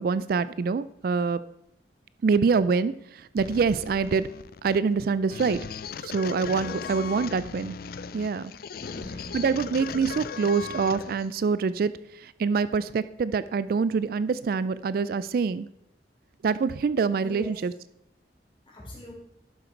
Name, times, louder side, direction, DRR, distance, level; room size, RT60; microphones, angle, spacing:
voice 1, 0.0-1.4 2.2-4.3 4.6-5.6 6.0-7.7 8.1-8.5 9.3-15.7 16.4-17.7, right 5 dB, 55° right, 16 dB, 0.3 m, -25 dB
sound 1, 3.4-11.3, left 5 dB, 55° left, 0.4 m, -38 dB
voice 2, 8.8-9.4 17.2-17.5 18.7-19.1, left 1 dB, 30° left, -4 dB, 3.8 m, -42 dB
11.5 x 7.8 x 4.5 m, 0.81 s
head